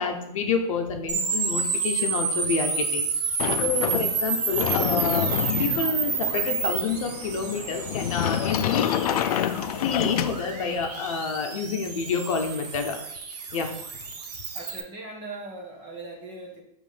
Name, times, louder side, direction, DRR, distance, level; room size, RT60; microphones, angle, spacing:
voice 1, 0.0-3.1 3.6-5.3 5.6-8.9 9.8-13.0 13.5-13.7, left 5 dB, 55° left, 4 dB, 0.8 m, -28 dB
sound 1, 1.1-14.8, right 5 dB, 85° right, 1.3 m, -30 dB
Sliding door, 3.4-10.9, left 11 dB, 70° left, 0.4 m, -28 dB
voice 2, 14.5-16.6, right 2 dB, 25° right, -1 dB, 1.3 m, -40 dB
7.4 x 3.2 x 5.0 m, 0.77 s
supercardioid pair, 175°, 20 cm